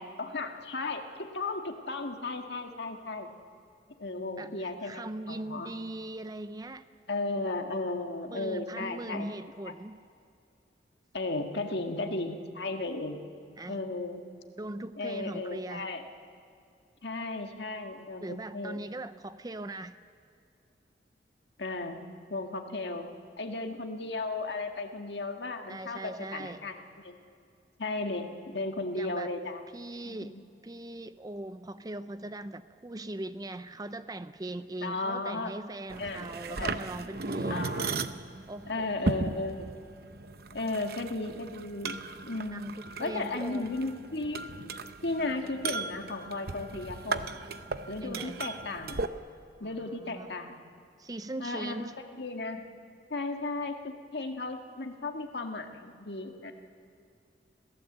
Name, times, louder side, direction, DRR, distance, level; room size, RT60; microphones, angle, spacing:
voice 1, 0.0-3.3 4.0-5.7 7.1-9.3 11.1-13.2 13.7-14.3 15.0-16.0 17.0-18.9 21.6-22.0 22.3-23.1 23.4-27.2 27.8-29.6 30.0-30.4 34.8-35.6 36.0-36.8 37.5-38.1 38.7-39.8 40.5-42.7 43.0-44.4 45.0-47.4 47.9-49.0 49.6-50.6 51.4-51.9 52.2-52.7 53.1-56.5, left 2 dB, 70° left, 4 dB, 1.8 m, -35 dB
voice 2, 4.4-6.8 8.3-10.0 13.6-13.8 14.6-15.9 18.2-19.9 25.7-26.6 29.0-29.3 29.7-30.3 30.6-37.8 38.5-38.9 42.5-43.7 48.0-48.4 49.6-50.3 51.0-52.0, right 1 dB, 20° right, 12 dB, 0.5 m, -40 dB
sound 1, 35.9-49.1, right 3 dB, 60° right, 0.8 m, -37 dB
27.0 x 16.0 x 8.0 m, 2.5 s
head